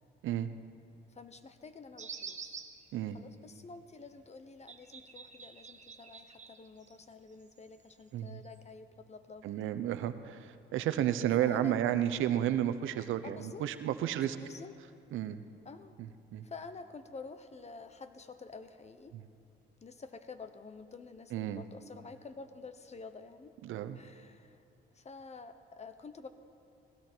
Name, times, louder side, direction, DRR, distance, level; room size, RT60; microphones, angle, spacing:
voice 1, 1.1-2.6 3.1-9.5 11.4-12.0 13.2-13.7 14.4-14.7 15.6-16.0 16.4-19.2 19.8-23.6 23.9-24.6 24.9-26.3, left 4 dB, 35° left, 10 dB, 1.0 m, -49 dB
sound 1, 2.0-2.9 4.7-7.1 7.4-8.6, right 5 dB, 35° right, 1.2 m, -48 dB
voice 2, 9.4-14.4 15.1-15.4 16.3-16.5 21.3-21.6 23.6-24.0, right 11 dB, 85° right, 11 dB, 0.8 m, -32 dB
19.0 x 16.0 x 4.5 m, 2.7 s
cardioid pair, 90°, 20 cm